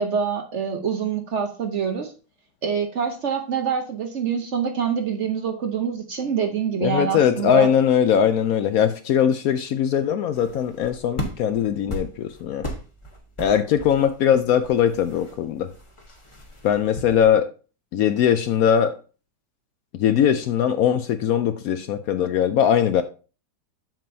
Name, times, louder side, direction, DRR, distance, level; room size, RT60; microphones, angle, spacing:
voice 1, 0.0-2.1 2.6-7.7, right 6 dB, 50° right, 0.9 m, -25 dB
voice 2, 6.8-12.7 13.4-15.7 16.6-17.5 17.9-19.0 19.9-23.0, left 9 dB, 70° left, 0.9 m, -20 dB
sound 1, 10.3-17.4, left 1 dB, 20° left, 1.1 m, -37 dB
7.6 x 7.3 x 2.7 m
omnidirectional pair, 1.8 m